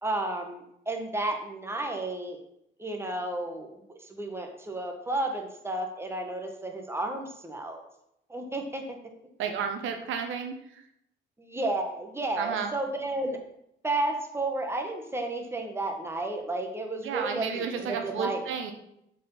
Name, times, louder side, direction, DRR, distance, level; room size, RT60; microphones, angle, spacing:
voice 1, 0.0-2.4 2.8-7.8 8.3-9.0 11.4-13.4 13.8-18.4, right 2 dB, 10° right, 3 dB, 1.4 m, -32 dB
voice 2, 9.4-10.8 12.4-12.7 17.0-18.7, right 6 dB, 85° right, 5 dB, 1.0 m, -32 dB
7.5 x 4.7 x 5.5 m, 0.77 s
cardioid pair, 90°, 20 cm